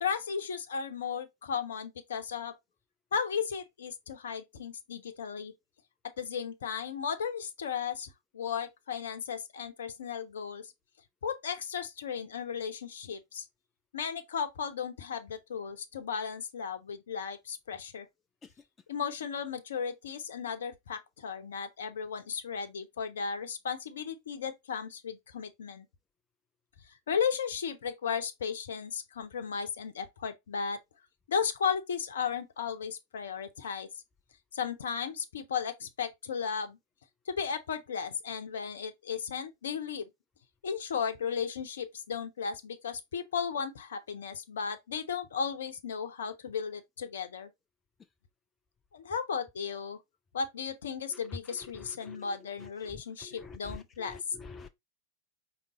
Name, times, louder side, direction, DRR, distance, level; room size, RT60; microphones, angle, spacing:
voice 1, 0.0-2.6 3.1-5.5 6.2-10.7 11.2-13.5 13.9-18.1 18.9-25.9 26.9-30.8 31.3-33.9 34.5-36.8 37.3-40.1 40.6-47.5 48.9-50.0 50.3-54.2, left 6 dB, 65° left, 0.7 m, -35 dB
voice 2, 53.3-53.8 54.0-54.7, left 4 dB, 20° left, 0.4 m, -46 dB
5.2 x 3.1 x 2.9 m
figure-of-eight pair, 90°, 0 cm